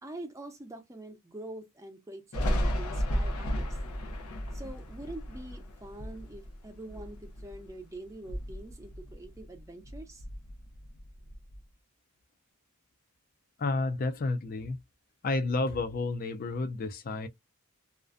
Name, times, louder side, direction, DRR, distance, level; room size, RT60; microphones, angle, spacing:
voice 1, 0.0-3.8 4.5-10.2, right 1 dB, 15° right, 0.5 m, -45 dB
Thunder, 2.3-7.8 8.1-9.6 9.9-11.6, equal, 80° left, 0.7 m, -34 dB
voice 2, 13.6-14.8 15.2-17.3, left 3 dB, 40° left, 0.4 m, -31 dB
2.4 x 2.1 x 2.4 m
head